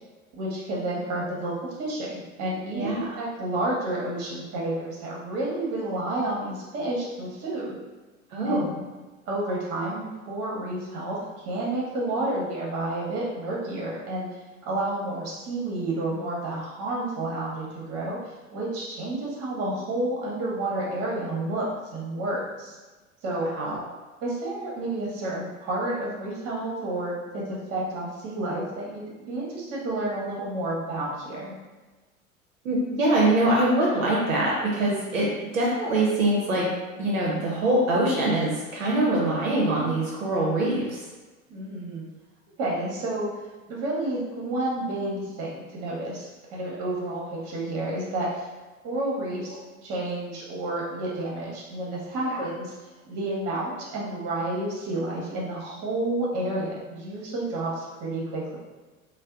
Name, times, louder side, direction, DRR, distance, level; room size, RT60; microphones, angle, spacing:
voice 1, 0.3-1.5 1.8-7.7 8.4-8.7 9.3-11.2 11.4-14.3 14.7-18.2 18.5-22.8 23.2-23.5 24.2-27.4 27.7-31.5 41.5-42.0 42.6-43.3 43.7-48.5 48.8-49.6 49.8-52.7 53.1-58.6, right 2 dB, 35° right, -4 dB, 0.9 m, -30 dB
voice 2, 2.7-3.1 8.3-8.6 23.6-23.8 32.6-36.7 37.0-41.0 52.3-52.4, right 1 dB, 70° right, -4 dB, 0.7 m, -24 dB
2.6 x 2.0 x 2.3 m, 1.2 s
figure-of-eight pair, 80°, 41 cm